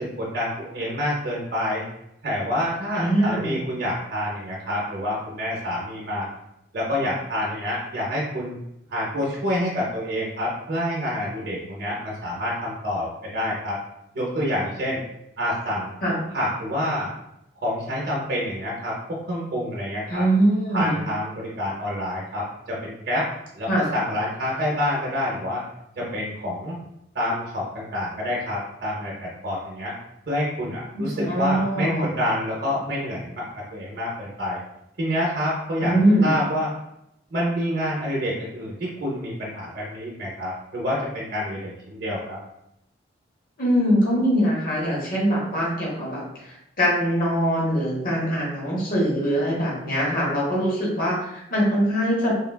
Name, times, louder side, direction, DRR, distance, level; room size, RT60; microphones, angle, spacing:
voice 1, 0.0-1.8 2.2-6.3 6.7-8.6 8.9-13.8 14.1-15.0 15.4-15.9 16.3-17.1 17.6-20.2 20.7-23.3 23.6-25.6 26.0-26.8 27.1-29.9 30.3-34.6 35.0-35.9 36.2-36.7 37.3-42.4, left 1 dB, 55° right, -4 dB, 0.7 m, -27 dB
voice 2, 2.9-3.5 16.0-16.2 20.1-21.0 23.7-23.9 30.9-32.1 35.8-36.4 43.6-52.3, equal, 50° left, -5 dB, 1.0 m, -22 dB
3.6 x 2.2 x 2.2 m, 0.82 s
head